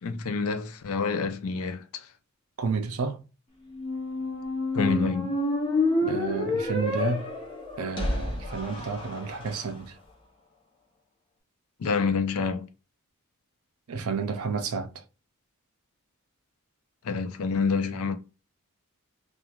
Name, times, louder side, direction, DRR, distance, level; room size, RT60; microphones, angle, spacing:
voice 1, 0.0-2.1 4.7-5.4 11.8-12.7 17.0-18.2, left 4 dB, 75° left, 0.4 m, -27 dB
voice 2, 2.6-3.2 6.0-7.3 7.8-10.0 13.9-15.0, right 4 dB, 75° right, 0.5 m, -31 dB
Squeak, 3.7-9.6, left 1 dB, 20° left, 0.8 m, -29 dB
3.0 x 2.4 x 2.3 m
head